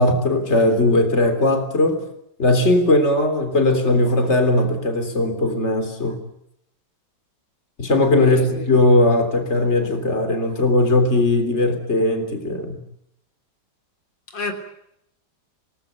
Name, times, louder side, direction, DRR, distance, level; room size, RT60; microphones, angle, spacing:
voice 1, 0.0-2.0 2.4-6.2 7.8-12.8, left 2 dB, 35° left, 3.8 m, -18 dB
voice 2, 8.2-8.7 14.3-14.5, left 4 dB, 85° left, 4.0 m, -30 dB
27.0 x 19.0 x 9.3 m
omnidirectional pair, 2.0 m